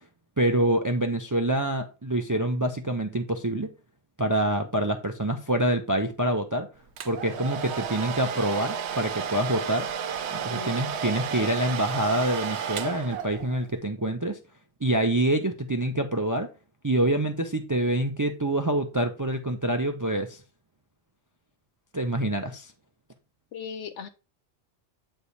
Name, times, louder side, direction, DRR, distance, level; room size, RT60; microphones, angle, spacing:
voice 1, 0.4-3.7 4.2-6.7 7.0-9.9 10.3-14.4 14.8-16.5 16.8-20.4 21.9-22.7, right 1 dB, 25° right, 0.4 m, -26 dB
Domestic sounds home sounds, 7.0-13.6, right 7 dB, 70° right, 0.9 m, -32 dB
voice 2, 23.5-24.1, left 7 dB, 75° left, 1.1 m, -37 dB
8.2 x 3.4 x 4.1 m
omnidirectional pair, 1.2 m